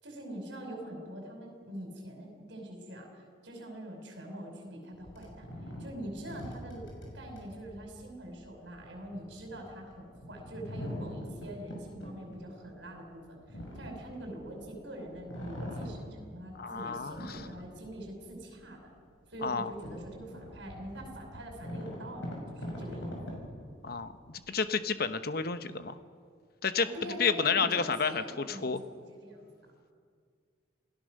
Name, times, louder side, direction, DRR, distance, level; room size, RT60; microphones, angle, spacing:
voice 1, 0.0-5.5 5.8-6.9 7.1-13.4 13.7-18.9 19.3-23.2 26.8-28.6 29.2-29.5, right 1 dB, 65° right, 2 dB, 5.5 m, -44 dB
sound 1, 5.0-14.8 15.1-16.6 17.0-18.3 18.8-18.9 19.3-24.4, equal, 80° left, 6.3 m, -43 dB
voice 2, 16.6-17.4 19.4-19.7 23.8-26.0 26.6-26.9 27.2-28.8, left 5 dB, 50° left, 11 dB, 1.0 m, -30 dB
28.0 x 17.0 x 6.6 m, 2.1 s
head